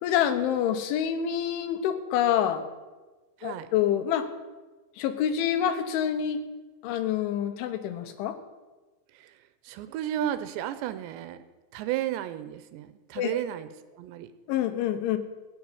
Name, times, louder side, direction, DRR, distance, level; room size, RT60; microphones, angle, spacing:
voice 1, 0.0-2.7 3.4-4.3 5.0-6.4 6.8-8.4 13.2-13.4 14.5-15.2, left 9 dB, 85° left, 9 dB, 3.6 m, -27 dB
voice 2, 3.4-3.7 9.1-9.4 9.6-11.4 11.7-14.3, right 12 dB, 80° right, 11 dB, 2.9 m, -33 dB
17.0 x 7.7 x 9.8 m, 1.2 s
omnidirectional pair, 5.3 m